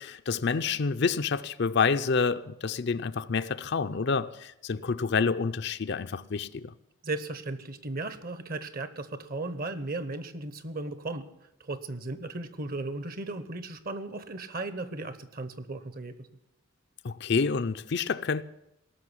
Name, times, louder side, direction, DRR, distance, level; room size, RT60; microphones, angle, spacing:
voice 1, 0.0-6.7 17.0-18.4, left 5 dB, 55° left, 0.5 m, -28 dB
voice 2, 7.0-11.3 11.6-16.3, right 2 dB, 45° right, 1.0 m, -36 dB
18.0 x 6.5 x 9.9 m
head